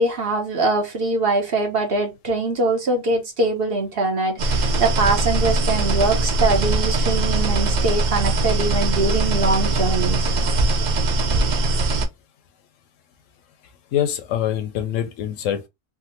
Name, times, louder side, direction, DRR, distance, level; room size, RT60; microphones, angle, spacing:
voice 1, 0.0-10.3, right 3 dB, 50° right, 0.9 m, -22 dB
sound 1, 4.4-12.1, right 2 dB, 85° right, 0.4 m, -21 dB
voice 2, 13.9-15.7, left 10 dB, 75° left, 0.9 m, -24 dB
3.6 x 2.0 x 2.8 m
omnidirectional pair, 1.4 m